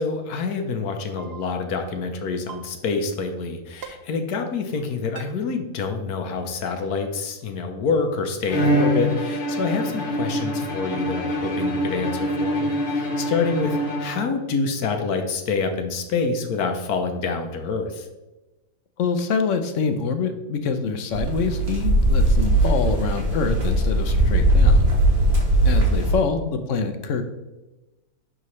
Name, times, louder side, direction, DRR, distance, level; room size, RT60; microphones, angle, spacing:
voice 1, 0.0-18.1, left 4 dB, 85° left, 5 dB, 1.4 m, -27 dB
sound 1, 1.2-1.3 2.5-2.6 3.8-3.9 5.2-5.3, right 8 dB, 55° right, 0.8 m, -37 dB
Bowed string instrument, 8.5-14.5, equal, 40° left, 1.2 m, -25 dB
voice 2, 19.0-24.9 25.6-27.2, left 5 dB, 60° left, 8 dB, 1.0 m, -25 dB
sound 2, 21.1-26.1, right 1 dB, 75° right, 2.2 m, -19 dB
11.0 x 3.8 x 3.2 m, 1.1 s
omnidirectional pair, 1.6 m